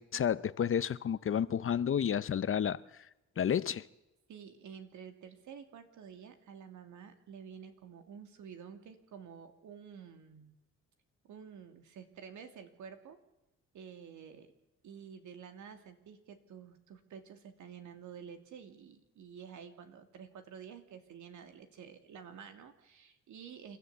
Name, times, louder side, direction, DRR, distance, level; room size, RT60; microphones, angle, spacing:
voice 1, 0.0-2.8 3.4-3.8, left 8 dB, 45° left, 0.8 m, -31 dB
voice 2, 4.3-10.5 11.2-13.2 13.7-14.5 14.8-23.8, right 7 dB, 75° right, 2.8 m, -50 dB
29.0 x 13.0 x 8.2 m
cardioid pair, 90°, 30 cm